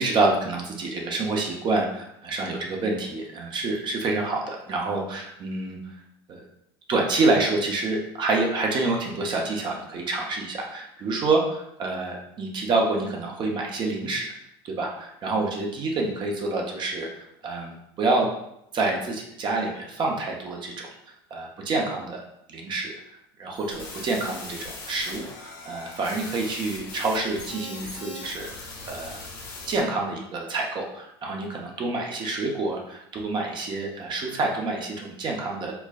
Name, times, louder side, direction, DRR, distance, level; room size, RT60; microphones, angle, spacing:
voice 1, 0.0-5.9 6.3-6.4 6.9-14.3 14.6-18.3 18.7-20.9 21.3-22.2 22.5-29.2 29.7-35.7, right 3 dB, 40° right, 0 dB, 0.7 m, -27 dB
sound 1, 23.5-29.8, left 3 dB, 65° left, 1.1 m, -40 dB
4.4 x 2.2 x 2.4 m, 0.78 s
hypercardioid pair, 80°, 13 cm